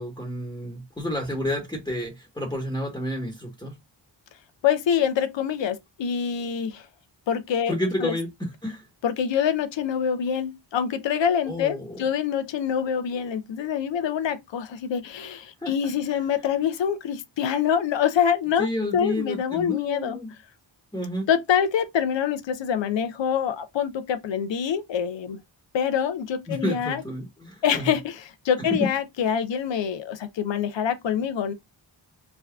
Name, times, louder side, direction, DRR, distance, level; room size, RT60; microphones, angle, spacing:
voice 1, 0.0-3.7 7.7-8.8 11.5-12.1 15.6-15.9 18.6-20.3 20.9-21.3 26.5-27.9, left 1 dB, 10° left, 1.1 m, -30 dB
voice 2, 4.6-6.9 7.3-7.7 8.0-8.1 9.0-18.7 18.9-20.2 21.3-25.4 25.7-27.0 27.6-31.5, left 8 dB, 70° left, 0.6 m, -25 dB
3.6 x 2.2 x 2.3 m
cardioid pair, 65°, 46 cm